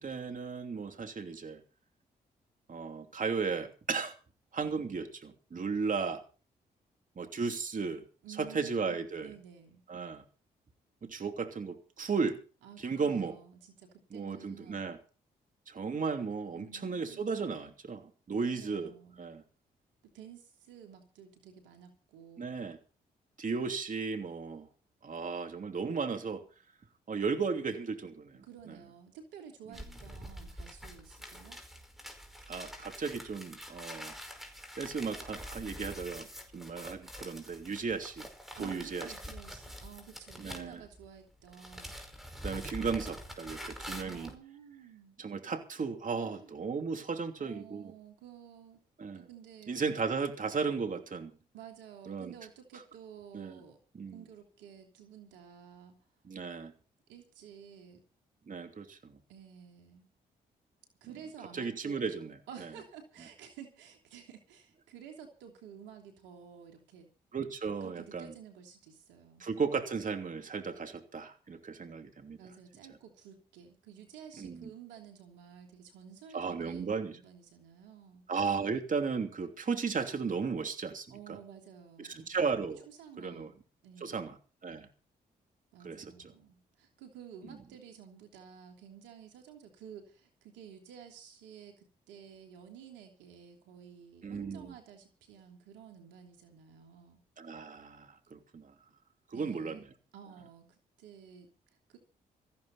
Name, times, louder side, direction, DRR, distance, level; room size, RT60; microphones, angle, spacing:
voice 1, 0.0-1.6 2.7-4.1 4.5-6.2 7.2-8.0 8.4-9.3 9.9-10.2 11.0-12.4 12.8-13.4 14.1-15.0 15.7-18.0 18.3-18.9 19.2-19.4 22.4-22.8 23.4-24.7 25.0-26.4 27.1-28.8 32.5-34.1 34.7-36.3 36.5-38.3 38.6-39.1 40.4-40.8 42.4-44.3 45.2-47.9 49.0-49.3 49.7-51.3 52.1-52.3 53.3-53.6 54.0-54.2 56.2-56.7 58.5-59.2 61.5-62.3 67.3-68.3 69.4-72.4 74.4-74.7 76.3-77.2 78.3-81.4 82.0-82.9 83.2-83.5 84.0-84.4 84.6-84.9 85.8-86.1 87.5-87.6 94.2-94.7 97.4-98.7 99.3-99.8, right 5 dB, 45° right, 6 dB, 3.0 m, -35 dB
voice 2, 8.2-9.8 12.6-14.9 16.5-17.7 18.4-19.2 20.1-22.7 28.4-31.6 38.6-41.9 44.0-45.2 46.2-46.5 47.4-48.8 49.1-49.8 51.5-53.8 54.1-56.0 57.1-58.0 59.3-60.1 61.0-67.1 67.8-69.5 72.4-78.2 81.1-82.4 82.9-83.5 83.8-84.3 85.7-97.2 99.3-99.8 100.1-101.5 101.9-102.0, right 8 dB, 90° right, 4 dB, 3.1 m, -52 dB
sound 1, 29.7-41.2 41.4-44.4, equal, ahead, 5.1 m, -46 dB
19.0 x 14.5 x 4.2 m, 0.36 s
supercardioid pair, 50°, 18 cm